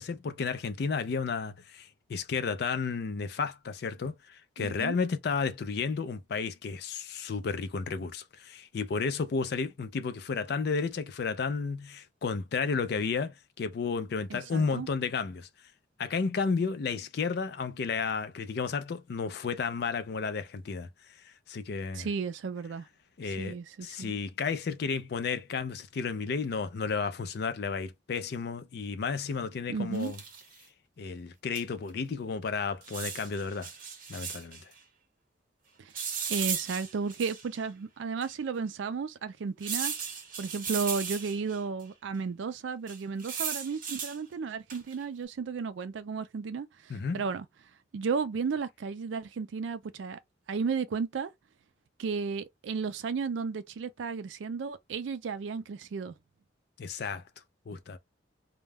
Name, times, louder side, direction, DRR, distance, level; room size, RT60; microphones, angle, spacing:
voice 1, 0.0-15.5 16.0-20.9 21.2-22.1 23.2-30.2 31.0-33.7 34.1-34.7 46.9-47.2 56.8-57.2 57.7-58.0, left 5 dB, 55° left, 0.4 m, -32 dB
voice 2, 4.6-5.0 14.3-14.9 21.9-22.9 23.3-24.1 29.7-30.1 35.8-35.9 36.3-39.9 40.4-47.5 47.9-50.2 50.5-51.3 52.0-56.1, right 5 dB, 75° right, 0.4 m, -34 dB
sound 1, 29.9-30.5 31.6-31.7 31.9-32.0 32.8-34.6 35.9-37.6 38.2-38.3 39.6-41.6 42.9-44.2 44.7-45.0, right 7 dB, 45° right, 0.8 m, -36 dB
2.2 x 2.1 x 3.3 m
head